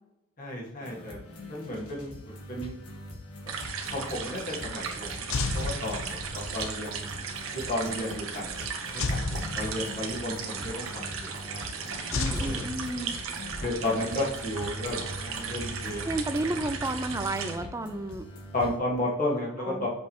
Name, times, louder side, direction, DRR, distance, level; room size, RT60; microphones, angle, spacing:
voice 1, 0.4-2.7 3.5-3.6 3.9-7.0 7.5-11.9 12.4-12.7 13.6-16.0 18.5-19.9, left 1 dB, 35° left, -3 dB, 1.8 m, -33 dB
sound 1, 0.8-18.8, left 1 dB, 90° left, 1.6 m, -44 dB
sound 2, 3.5-17.6, right 5 dB, 65° right, 1.1 m, -36 dB
sound 3, 5.3-6.6 9.0-10.3 12.1-13.4, left 3 dB, 65° left, 0.6 m, -32 dB
voice 2, 12.1-13.2 16.0-18.3 19.6-19.9, right 2 dB, 15° right, 8 dB, 0.4 m, -32 dB
6.9 x 5.3 x 3.0 m, 0.90 s
head